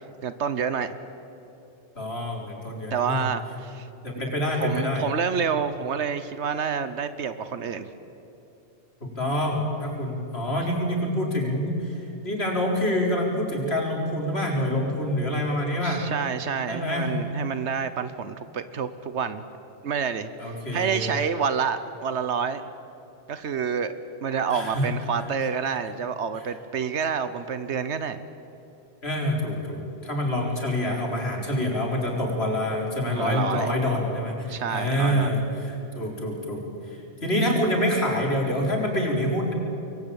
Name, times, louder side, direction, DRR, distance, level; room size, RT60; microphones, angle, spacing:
voice 1, 0.2-1.0 2.9-3.9 4.2-4.3 4.6-7.9 15.8-19.4 19.8-22.6 23.3-23.9 24.2-28.3 33.2-33.7 34.5-35.3, right 6 dB, 90° right, 11 dB, 1.3 m, -28 dB
voice 2, 2.0-3.2 4.0-5.0 9.0-16.0 16.7-17.2 20.4-21.1 24.5-24.9 29.0-39.5, left 1 dB, 70° left, 0 dB, 4.7 m, -26 dB
26.5 x 22.0 x 8.9 m, 2.8 s
omnidirectional pair, 1.1 m